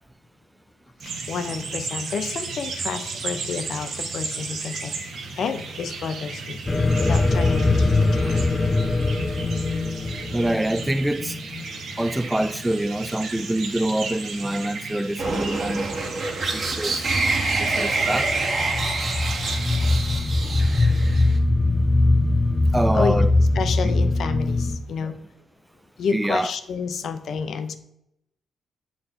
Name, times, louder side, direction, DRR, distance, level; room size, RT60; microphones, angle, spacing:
voice 1, 1.0-6.6 7.0-8.4 22.9-25.1 26.0-27.8, left 5 dB, 70° left, 0.6 m, -30 dB
sound 1, 1.0-20.0, right 4 dB, 70° right, 1.1 m, -35 dB
sound 2, 6.7-11.6 17.7-24.8, left 2 dB, 25° left, 0.8 m, -22 dB
voice 2, 10.3-11.4 12.0-15.9 16.5-17.0 17.6-18.3 22.7-23.3 23.8-23.9 25.0-25.1 26.1-26.5, right 1 dB, 10° right, 0.4 m, -25 dB
sound 3, 15.2-21.4, right 3 dB, 50° right, 1.4 m, -26 dB
6.8 x 4.2 x 4.3 m
cardioid pair, 70°, 0 cm